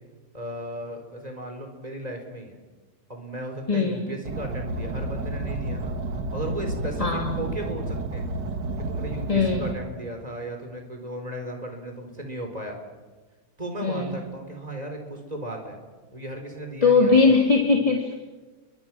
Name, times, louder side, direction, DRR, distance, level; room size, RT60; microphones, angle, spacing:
voice 1, 0.3-2.6 3.1-5.9 6.3-8.2 8.8-12.8 13.6-15.8 16.1-17.4, right 1 dB, 20° right, 3 dB, 4.4 m, -35 dB
voice 2, 3.7-4.0 7.0-7.3 9.3-9.7 13.8-14.1 16.8-18.1, left 4 dB, 20° left, 1 dB, 2.2 m, -20 dB
Car, 4.2-9.7, right 2 dB, 85° right, 2.4 m, -31 dB
30.0 x 23.5 x 6.2 m, 1.3 s
omnidirectional pair, 1.8 m